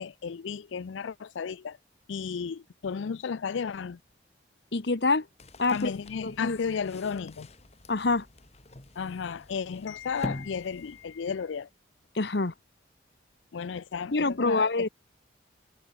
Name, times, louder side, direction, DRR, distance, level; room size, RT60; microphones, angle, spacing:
voice 1, 0.0-1.8 2.1-4.0 5.7-7.5 9.0-11.7 13.5-14.9, left 6 dB, 80° left, 0.4 m, -33 dB
voice 2, 4.7-5.2 5.6-5.9 6.2-6.6 7.9-8.3 12.1-12.5 14.1-14.9, left 3 dB, 60° left, 1.0 m, -26 dB
sound 1, 5.4-11.6, left 1 dB, 35° left, 1.7 m, -44 dB
head